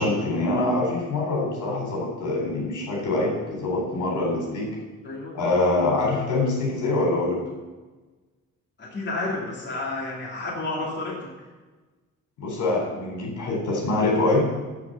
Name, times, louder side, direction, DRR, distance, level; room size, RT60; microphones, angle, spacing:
voice 1, 0.0-4.7 5.3-7.4 12.4-14.4, left 2 dB, 75° left, -1 dB, 3.9 m, -24 dB
voice 2, 5.0-5.4 8.8-11.3, left 2 dB, 35° left, -3 dB, 3.0 m, -31 dB
13.5 x 4.9 x 8.0 m, 1.2 s
cardioid pair, 90°, 30 cm